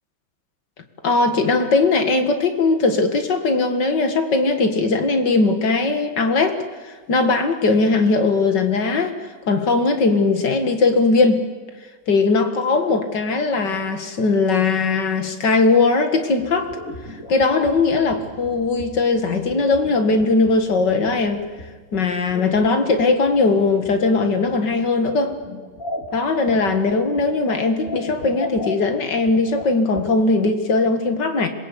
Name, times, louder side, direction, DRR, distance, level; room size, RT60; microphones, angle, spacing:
voice 1, 1.0-9.2 9.5-11.4 12.1-16.7 17.3-21.4 21.9-25.4 26.1-31.5, left 3 dB, 80° left, 7 dB, 2.6 m, -19 dB
sound 1, 16.4-30.0, left 1 dB, 50° left, 3.2 m, -37 dB
26.5 x 21.5 x 8.5 m, 1.4 s
omnidirectional pair, 1.8 m